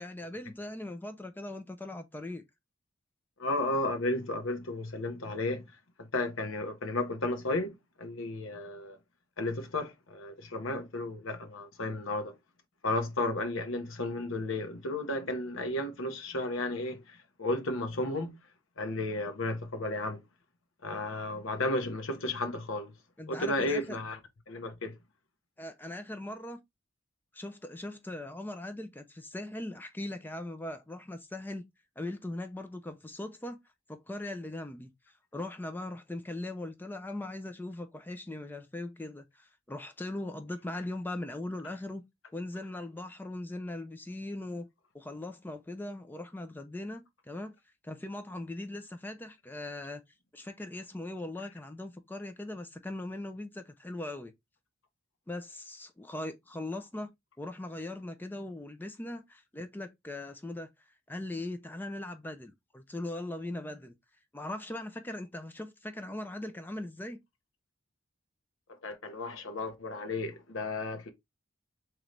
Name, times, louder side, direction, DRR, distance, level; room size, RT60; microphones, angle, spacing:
voice 1, 0.0-2.4 23.2-24.0 25.6-26.6 27.3-31.7 32.0-33.6 33.9-34.9 35.3-42.0 42.3-44.7 44.9-47.5 47.8-50.0 50.3-54.3 55.3-57.1 57.4-60.7 61.1-63.9 64.3-67.2, left 1 dB, 10° left, 0.4 m, -40 dB
voice 2, 3.4-5.6 6.1-9.0 9.4-12.3 12.8-18.4 18.8-20.2 20.8-22.9 23.3-24.2 24.5-24.9 68.7-71.1, left 2 dB, 85° left, 1.0 m, -33 dB
3.8 x 2.9 x 3.1 m
head